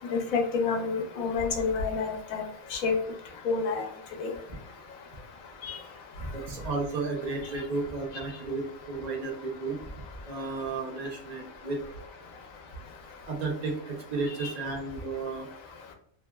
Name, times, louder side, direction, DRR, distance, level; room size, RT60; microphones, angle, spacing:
voice 1, 0.1-2.4 2.7-2.9 3.5-3.9 4.2-4.3 5.6-5.8 14.4-14.5, left 4 dB, 85° left, 3 dB, 1.1 m, -28 dB
voice 2, 6.3-9.8 10.3-11.8 13.3-15.5, right 3 dB, 70° right, 1 dB, 0.3 m, -33 dB
3.1 x 2.2 x 2.2 m, 0.64 s
omnidirectional pair, 1.4 m